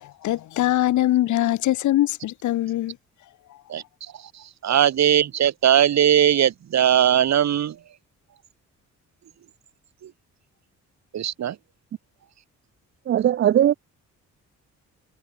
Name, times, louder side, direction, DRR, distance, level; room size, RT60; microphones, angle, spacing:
voice 1, 0.2-2.9, left 14 dB, 75° left, 1.0 m, -22 dB
voice 2, 4.3-7.8 10.0-10.1 11.1-11.6, right 10 dB, 60° right, 3.5 m, -19 dB
voice 3, 13.1-13.7, right 11 dB, 40° right, 0.4 m, -18 dB
cardioid pair, 90°, 30 cm